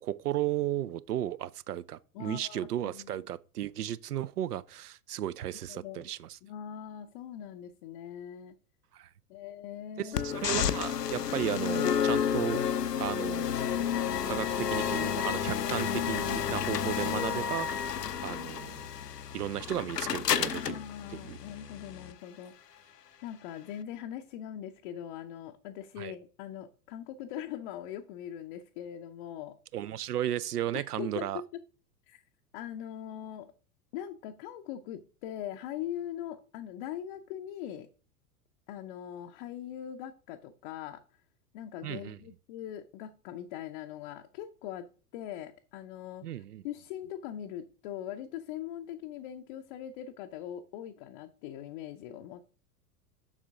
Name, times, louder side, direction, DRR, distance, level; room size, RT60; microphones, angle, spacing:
voice 1, 0.0-6.4 8.9-9.1 10.0-12.6 13.0-13.5 14.2-18.0 18.2-18.9 19.3-20.8 21.1-21.4 26.0-26.1 29.7-31.4 41.8-42.2 46.2-46.6, right 12 dB, 75° right, 0.5 m, -34 dB
voice 2, 2.1-3.2 5.7-6.1 6.4-8.6 9.3-10.2 16.3-16.5 20.4-22.5 23.2-29.6 30.7-31.6 32.1-32.2 32.5-33.5 33.9-37.9 38.7-41.0 41.5-44.9 45.1-52.6, left 10 dB, 35° left, 0.5 m, -41 dB
sound 1, 10.1-22.1, left 8 dB, 85° left, 0.6 m, -31 dB
7.3 x 5.6 x 3.5 m
figure-of-eight pair, 90°, 47 cm